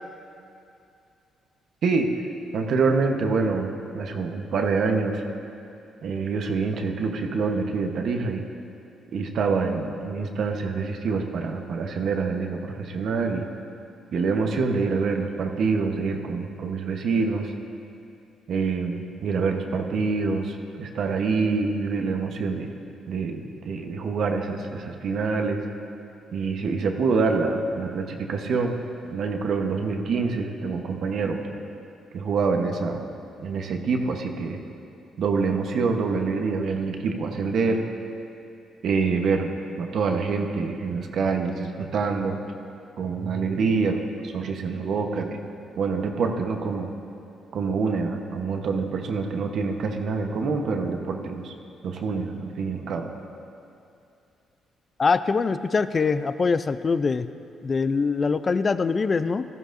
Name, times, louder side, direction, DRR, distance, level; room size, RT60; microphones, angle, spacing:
voice 1, 2.5-5.2 6.0-8.4 9.1-13.5 14.1-17.5 18.5-22.7 23.1-25.6 26.3-28.8 29.1-31.4 32.1-33.0 33.4-34.6 35.2-37.8 38.8-39.5 39.8-42.4 43.0-44.0 44.2-45.4 45.8-46.9 47.5-51.5 51.8-53.1, right 4 dB, 65° right, 3 dB, 1.0 m, -26 dB
voice 2, 55.0-57.3 57.6-59.5, left 4 dB, 35° left, 13 dB, 0.4 m, -23 dB
16.5 x 13.0 x 2.6 m, 2.6 s
cardioid pair, 90°, 0 cm